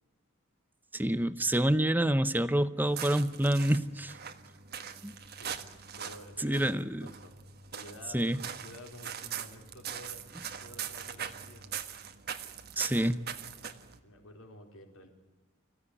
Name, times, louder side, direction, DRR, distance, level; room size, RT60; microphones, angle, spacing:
voice 1, 0.9-4.1 5.0-5.1 6.4-7.0 8.1-8.4 12.8-13.2, right 1 dB, 10° right, 13 dB, 0.8 m, -27 dB
sound 1, 2.8-14.0, right 8 dB, 50° right, 1.5 m, -42 dB
voice 2, 5.3-5.6 6.0-10.2 10.6-11.8 14.0-15.1, left 1 dB, 75° left, 2 dB, 4.5 m, -51 dB
25.5 x 16.0 x 9.7 m, 1.2 s
head